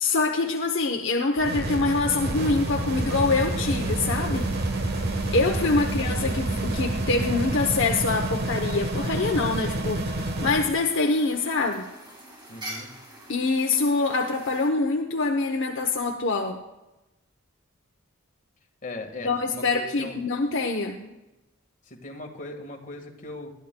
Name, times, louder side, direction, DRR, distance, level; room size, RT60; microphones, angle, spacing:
voice 1, 0.0-4.5 5.3-11.8 13.3-16.6 19.2-21.1, left 3 dB, 60° left, 3 dB, 0.8 m, -25 dB
sound 1, 1.4-10.7, right 2 dB, 50° right, 1.2 m, -28 dB
sound 2, 2.3-14.7, right 1 dB, 20° right, 2.0 m, -47 dB
voice 2, 5.6-6.0 12.5-12.9 18.8-20.2 21.9-23.5, left 2 dB, 40° left, 2 dB, 1.5 m, -39 dB
20.0 x 13.0 x 2.2 m, 0.99 s
head